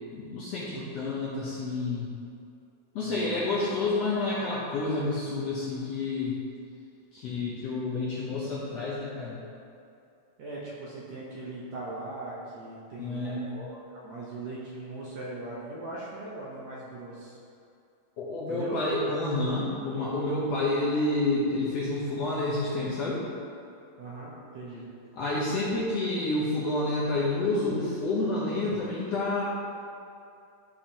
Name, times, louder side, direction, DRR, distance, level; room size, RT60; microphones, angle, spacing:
voice 1, 0.1-2.2 3.0-6.4 7.1-9.4 13.0-13.5 18.2-23.2 25.2-29.4, left 2 dB, 65° left, -7 dB, 1.7 m, -29 dB
voice 2, 3.0-3.6 10.4-13.7 13.9-17.4 18.5-18.7 24.0-24.8, right 2 dB, 65° right, -6 dB, 1.9 m, -40 dB
12.0 x 4.9 x 2.9 m, 2.6 s
omnidirectional pair, 3.9 m